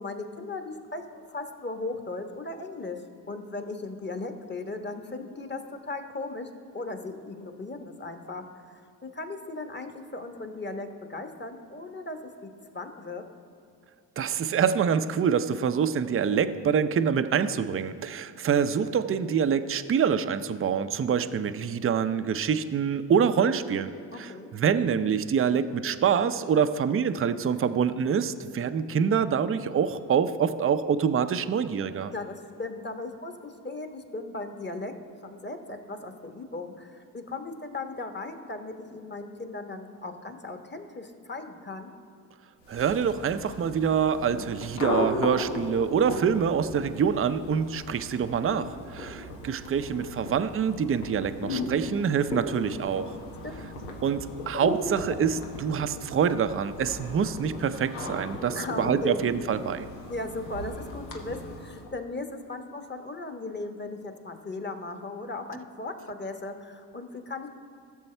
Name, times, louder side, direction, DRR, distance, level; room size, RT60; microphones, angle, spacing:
voice 1, 0.0-3.0 3.3-6.5 6.7-12.2 12.4-13.2 24.1-24.5 32.1-34.9 35.2-41.9 48.9-49.1 53.4-53.7 58.5-59.3 60.1-67.5, left 2 dB, 20° left, 6 dB, 1.2 m, -37 dB
voice 2, 14.2-32.1 42.7-53.1 54.0-59.9, right 7 dB, 25° right, 11 dB, 0.6 m, -26 dB
sound 1, 42.6-62.0, left 2 dB, 85° left, 1.2 m, -36 dB
16.0 x 6.9 x 3.3 m, 2.4 s
hypercardioid pair, 45°, 49 cm